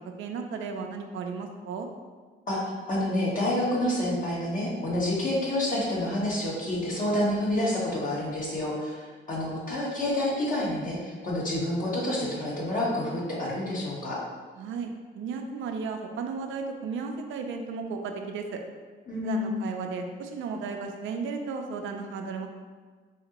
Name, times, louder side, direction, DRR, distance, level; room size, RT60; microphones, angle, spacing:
voice 1, 0.2-1.9 14.6-18.6 19.2-22.5, right 5 dB, 75° right, 4 dB, 0.5 m, -34 dB
voice 2, 2.5-14.2 19.1-19.7, left 1 dB, 45° left, -5 dB, 1.4 m, -28 dB
4.2 x 2.8 x 2.9 m, 1.5 s
cardioid pair, 90°, 20 cm